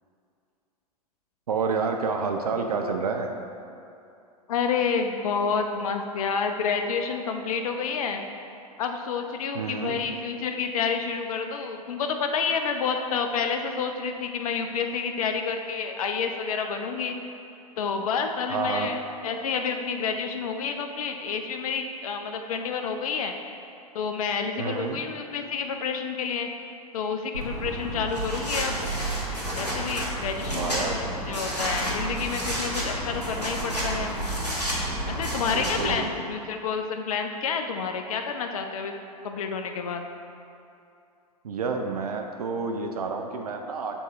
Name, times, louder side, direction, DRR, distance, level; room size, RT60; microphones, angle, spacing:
voice 1, 1.5-3.3 9.5-10.0 18.5-18.9 24.6-25.0 30.5-31.0 35.5-36.1 41.4-44.0, right 4 dB, 70° right, 4 dB, 0.5 m, -29 dB
voice 2, 4.5-8.2 8.8-17.1 17.8-19.0 19.2-23.3 23.9-26.5 26.9-28.8 29.6-34.1 35.1-38.9 39.2-40.1, left 5 dB, 60° left, 5 dB, 0.5 m, -29 dB
sound 1, 27.3-35.9, right 1 dB, 90° left, 1.3 m, -30 dB
7.0 x 4.0 x 3.5 m, 2.6 s
figure-of-eight pair, 95°, 20 cm